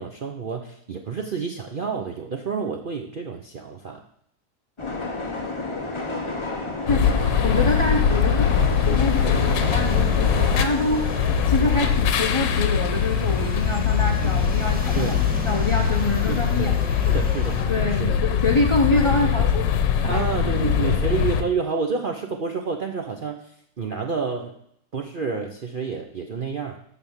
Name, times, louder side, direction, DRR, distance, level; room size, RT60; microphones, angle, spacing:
voice 1, 0.0-4.0 7.0-7.2 8.1-8.2 14.2-14.4 14.9-15.2 16.3-18.2 20.1-24.5 24.9-26.8, right 5 dB, 70° right, 2 dB, 0.5 m, -29 dB
sound 1, 4.8-15.4, left 3 dB, 20° left, 0.9 m, -32 dB
sound 2, 6.9-21.4, left 7 dB, 85° left, 1.5 m, -22 dB
voice 2, 6.9-15.1 15.4-16.7 17.7-19.7 20.0-21.0, left 2 dB, 50° left, 2 dB, 0.3 m, -26 dB
sound 3, 8.5-17.6, right 2 dB, 5° right, 1.1 m, -35 dB
12.0 x 4.1 x 7.2 m, 0.71 s
omnidirectional pair, 1.9 m